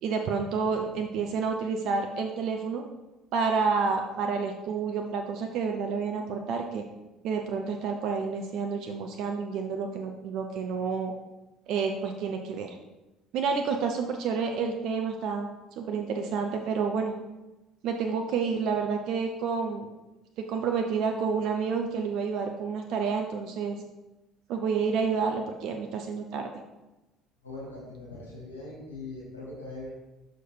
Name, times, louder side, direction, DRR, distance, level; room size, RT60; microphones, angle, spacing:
voice 1, 0.0-2.8 3.3-6.8 7.2-11.1 11.7-12.8 13.3-17.2 17.8-19.9 20.4-23.8 24.5-26.5, right 5 dB, 60° right, 4 dB, 0.6 m, -29 dB
voice 2, 27.4-29.9, left 2 dB, 90° left, -7 dB, 2.1 m, -41 dB
6.4 x 5.2 x 4.3 m, 1.0 s
figure-of-eight pair, 55°, 0 cm